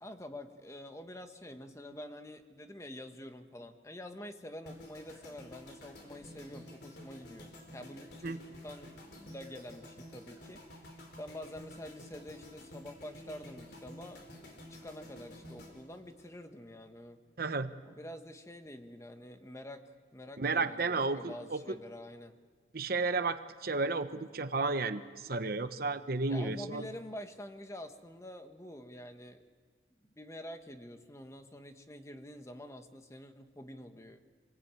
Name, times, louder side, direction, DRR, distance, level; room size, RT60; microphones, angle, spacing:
voice 1, 0.0-10.6 11.2-17.2 17.9-22.4 26.3-29.4 30.0-34.2, left 1 dB, 15° left, 7 dB, 1.3 m, -47 dB
sound 1, 4.7-16.8 17.1-17.4, left 1 dB, 60° left, 4.6 m, -51 dB
voice 2, 17.4-17.7 20.4-21.6 22.7-26.8, right 3 dB, 55° right, 10 dB, 0.9 m, -32 dB
26.0 x 19.0 x 8.9 m, 1.5 s
head